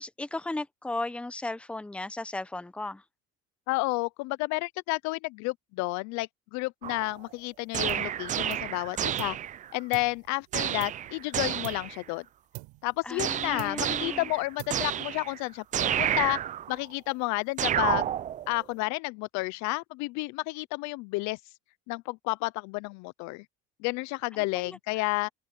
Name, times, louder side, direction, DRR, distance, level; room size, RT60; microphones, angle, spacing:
voice 1, 0.0-3.0 13.0-14.3 24.3-24.8, left 2 dB, 5° left, 0.8 m, -36 dB
voice 2, 3.7-9.4 9.7-12.2 12.8-16.4 16.7-18.1 18.5-21.4 21.9-23.4 23.8-25.3, left 24 dB, 70° left, 0.5 m, -31 dB
sound 1, 6.8-7.3 7.7-9.7 10.5-12.0 13.2-15.4 15.7-16.8 17.6-18.6, right 10 dB, 25° right, 0.4 m, -30 dB
sound 2, 7.9-8.2 8.5-9.5 9.9-11.3 11.6-12.1 12.5-13.3 13.6-14.1 14.6-15.1, right 24 dB, 80° right, 5.1 m, -46 dB
open air
cardioid pair, 155°, 30 cm